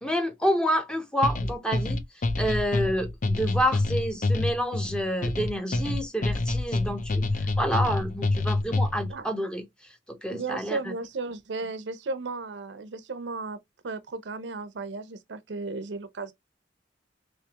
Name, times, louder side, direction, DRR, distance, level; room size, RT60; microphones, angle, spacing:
voice 1, 0.0-2.0 2.4-7.2 7.6-9.6 10.1-10.9, equal, 5° left, 0.7 m, -28 dB
sound 1, 1.2-9.1, left 2 dB, 45° left, 0.5 m, -27 dB
voice 2, 10.3-13.6 13.8-16.3, right 3 dB, 75° right, 0.6 m, -35 dB
3.4 x 3.3 x 2.8 m
head